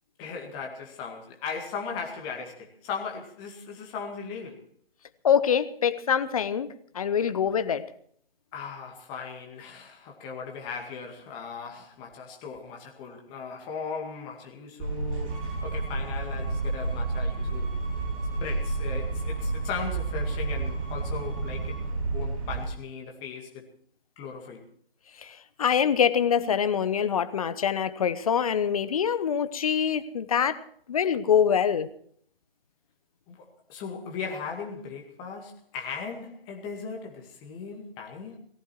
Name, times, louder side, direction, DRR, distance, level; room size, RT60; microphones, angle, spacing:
voice 1, 0.2-4.6 8.5-17.7 18.4-21.8 22.1-23.7 24.2-24.7 33.3-38.4, left 5 dB, 15° left, 2.1 m, -38 dB
voice 2, 5.2-6.7 6.9-7.8 25.2-30.6 30.9-31.9, left 8 dB, 35° left, 1.0 m, -24 dB
sound 1, 14.8-22.7, right 3 dB, 35° right, 6.1 m, -30 dB
Bowed string instrument, 15.3-21.8, right 2 dB, 20° right, 3.1 m, -48 dB
18.0 x 15.0 x 4.6 m
figure-of-eight pair, 145°, 30 cm